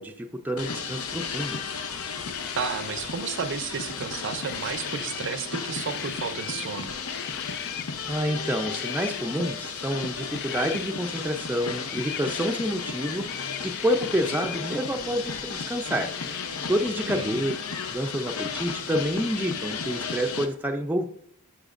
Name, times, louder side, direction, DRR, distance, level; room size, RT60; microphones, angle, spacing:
voice 1, 0.0-1.6 8.1-13.3 13.6-16.1 16.7-17.5 17.9-21.1, equal, 10° right, 0.4 m, -28 dB
sound 1, 0.6-20.5, left 6 dB, 80° left, 0.7 m, -34 dB
sound 2, 2.2-3.0 4.4-5.4 5.7-6.7 7.1-7.9 8.6-9.2 10.3-10.9 11.8-12.5 13.2-14.6 16.1-16.5, left 9 dB, 50° left, 0.4 m, -39 dB
voice 2, 2.6-6.9 17.1-17.4, right 6 dB, 60° right, 0.5 m, -32 dB
10.0 x 5.8 x 2.5 m
head